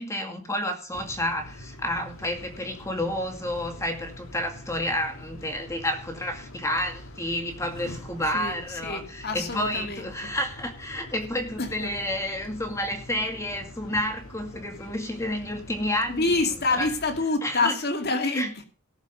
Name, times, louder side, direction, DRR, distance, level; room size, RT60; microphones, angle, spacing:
voice 1, 0.0-16.9 17.4-17.8 18.3-18.5, left 1 dB, 15° left, 2.2 m, -30 dB
sound 1, 0.9-17.2, left 1 dB, 70° left, 2.3 m, -44 dB
voice 2, 8.8-10.3 11.6-11.9 16.1-18.7, left 3 dB, 45° left, 2.5 m, -27 dB
18.5 x 7.3 x 5.4 m
head